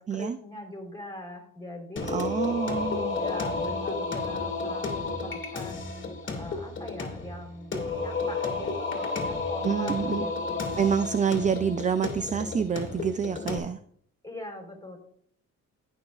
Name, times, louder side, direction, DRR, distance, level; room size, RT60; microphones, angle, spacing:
voice 1, 0.0-2.3 3.1-10.8 14.2-15.0, left 1 dB, 10° left, 1 dB, 3.9 m, -42 dB
Singing, 2.0-13.6, left 3 dB, 40° left, 2.3 m, -32 dB
voice 2, 2.1-3.2 9.6-10.3 10.8-13.8, right 7 dB, 25° right, 11 dB, 0.4 m, -27 dB
19.0 x 6.4 x 2.4 m, 0.65 s
cardioid pair, 90°, 30 cm